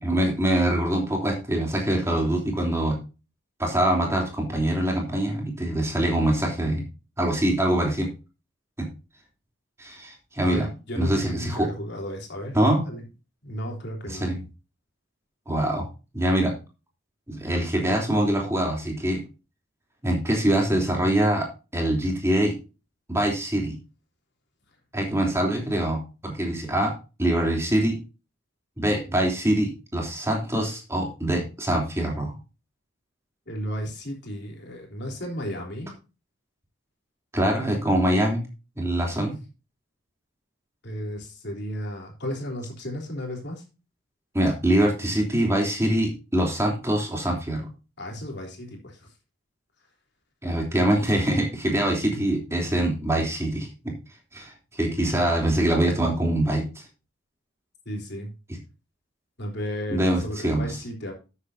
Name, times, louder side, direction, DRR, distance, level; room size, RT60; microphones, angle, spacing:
voice 1, 0.0-3.0 3.6-6.8 7.2-8.1 8.8-8.9 9.8-10.7 10.9-11.7 12.5-12.8 14.1-14.4 15.5-15.9 16.1-16.5 17.3-19.2 20.0-21.5 21.7-22.5 23.1-23.8 24.9-26.9 27.2-28.0 28.8-32.3 37.3-38.4 38.7-39.4 44.3-47.7 50.4-53.9 54.3-56.8 58.5-58.6 59.9-60.8, right 1 dB, 15° right, 0 dB, 3.1 m, -24 dB
voice 2, 10.4-12.6 12.9-13.0 13.4-14.3 33.5-35.9 39.2-39.3 40.8-43.6 48.0-49.1 57.9-58.3 59.4-61.1, equal, 60° left, 1 dB, 3.5 m, -34 dB
13.0 x 8.1 x 2.7 m, 0.30 s
head